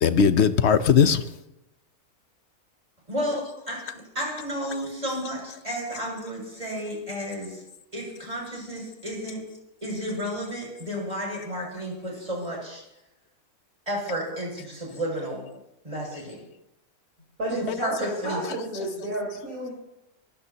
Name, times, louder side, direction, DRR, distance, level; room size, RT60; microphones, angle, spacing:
voice 1, 0.0-1.2 3.3-3.4 15.2-15.3 17.7-18.1 18.4-18.8, left 7 dB, 55° left, 12 dB, 0.9 m, -21 dB
voice 2, 3.1-7.6 7.9-9.4 9.8-12.8 13.9-15.4 15.8-16.4 17.5-18.4, equal, 25° right, -2 dB, 6.6 m, -32 dB
voice 3, 17.4-19.7, right 1 dB, 65° right, -4 dB, 5.0 m, -31 dB
24.0 x 18.0 x 2.9 m, 0.90 s
omnidirectional pair, 1.6 m